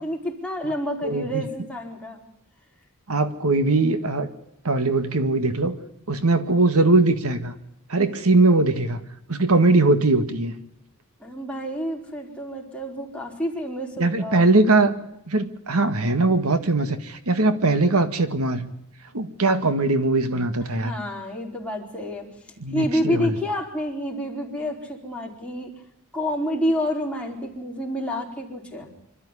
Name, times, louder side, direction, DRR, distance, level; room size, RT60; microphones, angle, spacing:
voice 1, 0.0-2.2 11.2-14.4 20.6-22.3 22.7-25.7 26.1-28.9, equal, 5° left, -1 dB, 4.5 m, -29 dB
voice 2, 1.0-1.4 3.1-4.3 4.7-5.8 6.1-7.5 7.9-9.0 9.3-10.5 14.0-14.9 15.3-18.7 19.1-20.9 22.6-23.4, right 2 dB, 75° right, 10 dB, 1.8 m, -20 dB
26.0 x 13.5 x 9.9 m, 0.80 s
head